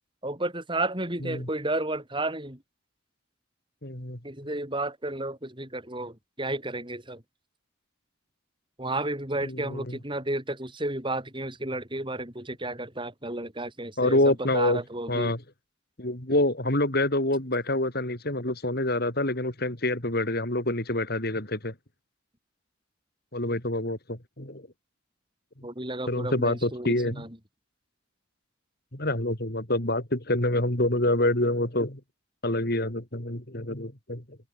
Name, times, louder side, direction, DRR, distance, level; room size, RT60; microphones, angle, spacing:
voice 1, 0.2-2.6 4.2-7.2 8.8-14.2 14.5-15.3 25.6-27.4, right 2 dB, 25° right, 6.9 m, -32 dB
voice 2, 3.8-4.2 9.4-10.0 14.0-14.8 15.1-15.4 16.0-21.7 23.3-24.7 25.6-25.7 26.1-27.2 28.9-32.0 32.4-34.4, left 1 dB, 50° left, 4.3 m, -27 dB
head